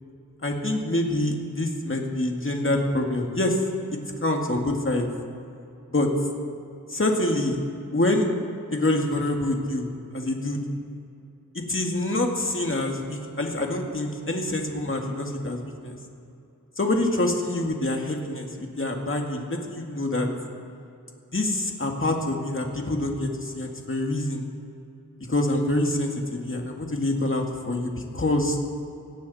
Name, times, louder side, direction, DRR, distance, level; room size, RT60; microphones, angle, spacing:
voice 1, 0.4-3.6 3.9-5.1 5.9-6.1 6.9-7.6 7.9-8.3 8.7-9.8 10.1-10.6 11.5-16.0 16.8-20.3 21.3-24.4 25.3-28.6, left 1 dB, 40° left, 2 dB, 2.2 m, -26 dB
18.0 x 17.0 x 4.3 m, 2.6 s
wide cardioid pair, 65°, 32 cm